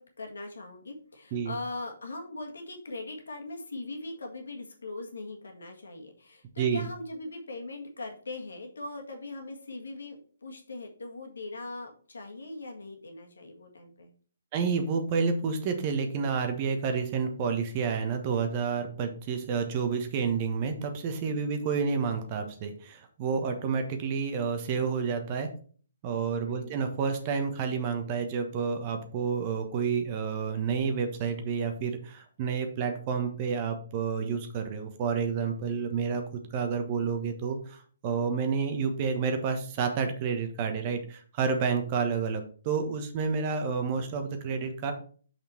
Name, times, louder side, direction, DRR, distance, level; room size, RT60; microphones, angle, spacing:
voice 1, 0.0-14.1 21.2-21.5 26.5-26.8, left 2 dB, 70° left, 3 dB, 1.7 m, -40 dB
voice 2, 14.5-25.5 26.0-44.9, right 5 dB, 35° right, 6 dB, 1.2 m, -30 dB
6.2 x 5.2 x 4.4 m, 0.44 s
figure-of-eight pair, 130°, 0 cm